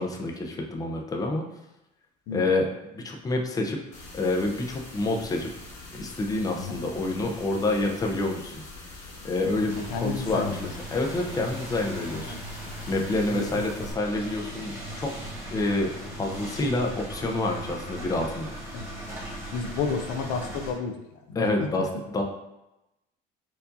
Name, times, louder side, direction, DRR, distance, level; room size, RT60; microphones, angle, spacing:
voice 1, 0.0-1.4 2.3-2.7 2.9-3.8 4.1-5.5 5.9-8.6 9.2-10.6 10.9-12.3 12.9-13.7 13.9-15.1 15.5-15.9 16.2-18.5 21.4-22.2, left 2 dB, 20° left, 1 dB, 0.5 m, -27 dB
sound 1, 3.9-13.9, left 2 dB, 40° left, 1.1 m, -44 dB
sound 2, 9.7-20.7, right 1 dB, 15° right, 1.3 m, -39 dB
voice 2, 9.9-10.7 11.4-11.5 12.1-12.4 13.3-13.7 18.7-18.9 19.5-21.9, left 5 dB, 75° left, 5 dB, 0.4 m, -32 dB
4.5 x 2.6 x 2.6 m, 0.92 s
cardioid pair, 115°, 19 cm